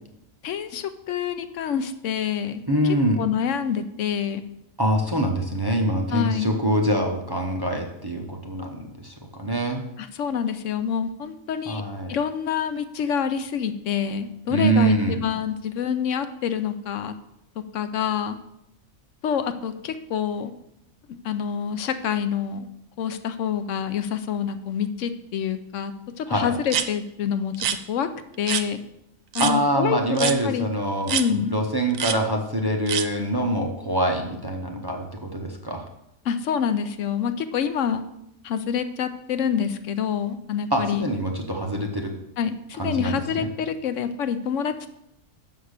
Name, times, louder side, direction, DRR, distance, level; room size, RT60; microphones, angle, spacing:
voice 1, 0.4-4.4 6.1-6.5 10.0-11.8 12.1-17.1 17.7-18.4 19.2-20.5 21.2-22.7 23.0-25.9 26.2-28.1 28.4-28.8 29.3-30.7 31.1-31.6 36.3-38.0 38.4-41.0 42.4-44.9, left 7 dB, 75° left, 10 dB, 0.9 m, -27 dB
voice 2, 2.7-3.2 4.8-9.8 11.7-12.2 14.5-15.2 26.3-26.5 29.4-31.2 31.5-35.8 40.7-42.1 42.8-43.5, right 1 dB, 20° right, 2 dB, 0.7 m, -24 dB
sound 1, 26.7-26.9 27.5-27.8 28.5-28.7 29.3-29.5 30.2-30.4 31.1-31.3 31.9-32.2 32.9-33.1, right 9 dB, 85° right, 1.0 m, -25 dB
6.7 x 5.6 x 6.5 m, 0.80 s
omnidirectional pair, 1.4 m